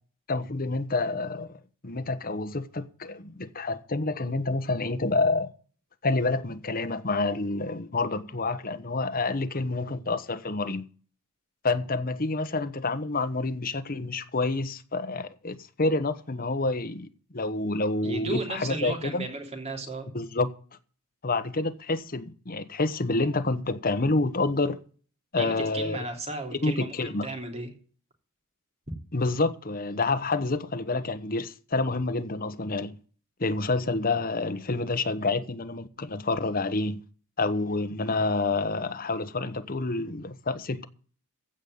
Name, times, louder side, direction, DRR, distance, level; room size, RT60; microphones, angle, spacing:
voice 1, 0.3-5.5 6.0-10.8 11.6-17.1 17.3-19.2 20.1-20.5 21.2-24.8 25.3-26.0 26.6-27.3 29.1-33.0 33.4-37.0 37.4-40.9, left 3 dB, 40° left, 1.1 m, -28 dB
voice 2, 18.0-20.1 25.3-26.9 27.2-27.7 28.9-29.0, right 2 dB, 30° right, 3.3 m, -34 dB
15.5 x 5.4 x 8.1 m
head